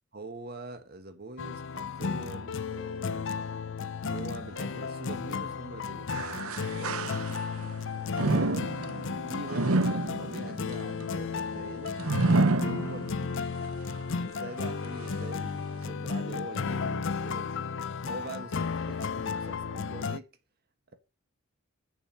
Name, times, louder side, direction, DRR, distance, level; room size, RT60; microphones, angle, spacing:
voice 1, 0.1-3.4 4.1-6.2 6.7-7.0 8.2-8.6 9.3-12.0 12.5-13.4 14.2-17.6 18.0-20.3 20.9-21.0, right 2 dB, 45° right, 1.5 m, -43 dB
sound 1, 1.4-20.2, left 5 dB, 55° left, 0.5 m, -34 dB
sound 2, 6.1-7.7 8.1-13.4 13.9-14.0 14.8-14.9, right 2 dB, 75° right, 0.9 m, -29 dB
7.5 x 7.2 x 5.6 m
head